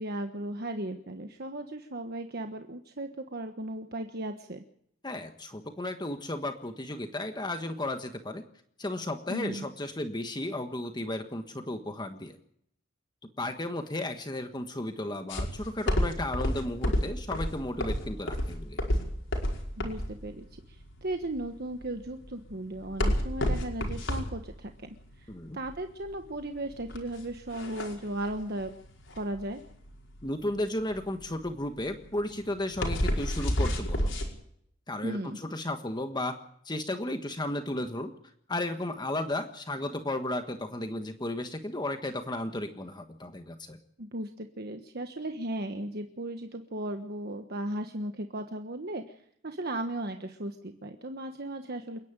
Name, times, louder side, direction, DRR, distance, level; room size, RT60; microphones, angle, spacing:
voice 1, 0.0-4.6 9.3-9.7 19.8-28.7 29.2-29.6 35.0-35.4 44.0-49.1 49.4-52.0, right 1 dB, 55° right, 6 dB, 1.4 m, -36 dB
voice 2, 5.0-8.4 8.8-12.3 13.4-18.8 25.3-25.6 30.2-34.2 34.9-36.4 36.6-38.1 38.5-43.8, left 1 dB, 20° left, 6 dB, 1.4 m, -34 dB
sound 1, 15.3-34.3, equal, 70° left, 5.3 m, -30 dB
28.5 x 10.5 x 9.0 m, 0.69 s
head